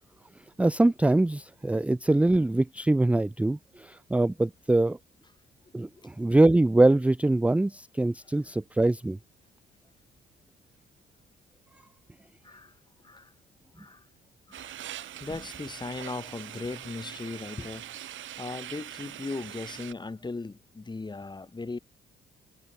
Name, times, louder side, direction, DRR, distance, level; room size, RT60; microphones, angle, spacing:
voice 1, 0.6-5.0 5.7-9.2, right 2 dB, 5° right, 0.4 m, -23 dB
voice 2, 12.4-12.8 13.0-13.3 13.7-14.1 14.5-14.8 15.2-17.9 18.4-21.8, left 3 dB, 20° left, 3.5 m, -38 dB
sound 1, 14.5-19.9, right 12 dB, 75° right, 2.6 m, -42 dB
cardioid pair, 90°, 20 cm